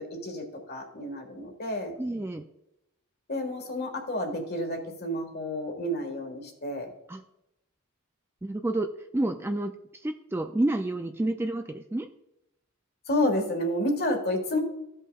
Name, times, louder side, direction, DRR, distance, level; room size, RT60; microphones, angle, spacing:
voice 1, 0.0-1.9 3.3-6.9 13.1-14.6, left 1 dB, 50° left, 3 dB, 1.6 m, -30 dB
voice 2, 2.0-2.4 7.1-7.2 8.4-12.1, right 1 dB, 10° right, 6 dB, 0.3 m, -30 dB
15.0 x 5.5 x 2.3 m, 0.85 s
head